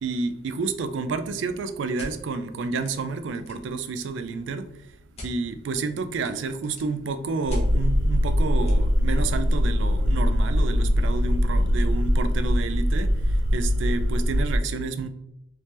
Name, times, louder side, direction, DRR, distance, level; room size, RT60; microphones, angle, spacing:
voice 1, 0.0-15.1, right 4 dB, 70° right, 0.3 m, -30 dB
sound 1, 2.0-2.1 2.8-2.9 3.2-3.7 5.1-5.3 6.2-6.9 7.5-7.6 8.6-8.7, left 1 dB, 35° left, 0.9 m, -42 dB
sound 2, 7.4-14.6, equal, 85° left, 0.9 m, -22 dB
3.3 x 2.8 x 3.1 m
head